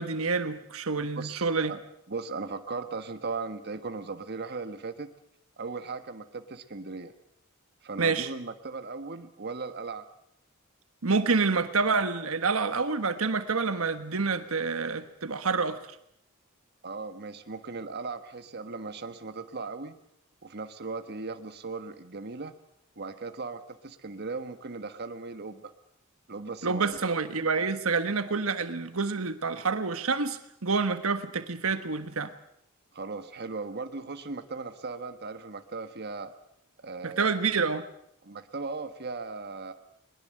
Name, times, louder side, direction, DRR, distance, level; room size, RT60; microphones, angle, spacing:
voice 1, 0.0-1.7 8.0-8.3 11.0-15.8 26.6-32.3 37.0-37.8, right 4 dB, 70° right, 10 dB, 1.4 m, -28 dB
voice 2, 1.1-1.8 2.1-5.1 5.6-7.1 7.8-10.0 16.8-19.9 20.4-22.5 23.0-25.7 26.3-27.0 32.9-36.3 36.8-37.3 38.2-39.7, right 4 dB, 50° right, 8 dB, 1.4 m, -37 dB
21.5 x 21.5 x 7.8 m, 0.74 s
head